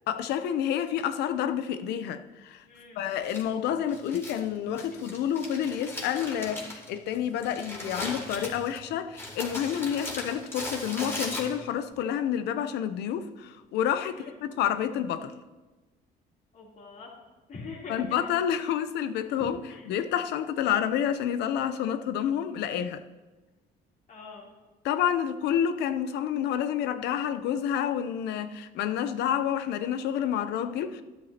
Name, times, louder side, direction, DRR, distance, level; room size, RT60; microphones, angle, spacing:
voice 1, 0.1-2.6 3.0-15.3 17.9-19.6 19.9-23.0 24.8-31.0, left 9 dB, 80° left, 0.7 m, -29 dB
voice 2, 2.7-3.1 7.4-7.7 14.0-14.3 16.5-17.1 17.5-18.3 19.3-19.9 24.1-24.5, left 3 dB, 50° left, 3.3 m, -44 dB
Crumpling crinkling, 3.2-11.9, left 1 dB, 15° left, 3.0 m, -39 dB
12.5 x 12.0 x 2.9 m
cardioid pair, 110°, 17 cm